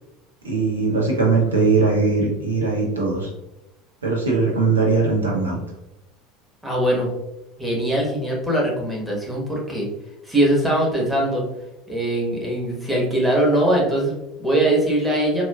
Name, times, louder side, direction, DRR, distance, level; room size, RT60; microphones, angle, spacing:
voice 1, 0.4-3.3 4.0-5.6, right 4 dB, 75° right, -2 dB, 0.7 m, -20 dB
voice 2, 6.6-7.1 7.6-9.9 10.2-11.4 11.9-15.4, right 1 dB, 5° right, -3 dB, 1.1 m, -21 dB
4.2 x 2.3 x 2.3 m, 0.92 s
figure-of-eight pair, 70°, 0 cm